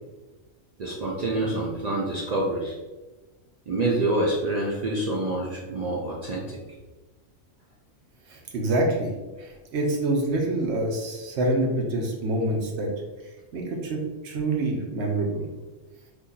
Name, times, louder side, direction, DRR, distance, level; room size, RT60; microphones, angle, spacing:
voice 1, 0.8-2.7 3.7-6.6, right 2 dB, 85° right, -3 dB, 0.3 m, -27 dB
voice 2, 8.3-9.1 9.4-12.9 13.5-14.0 14.2-15.5, right 2 dB, 60° right, 1 dB, 0.9 m, -26 dB
2.8 x 2.6 x 3.7 m, 1.2 s
omnidirectional pair, 1.4 m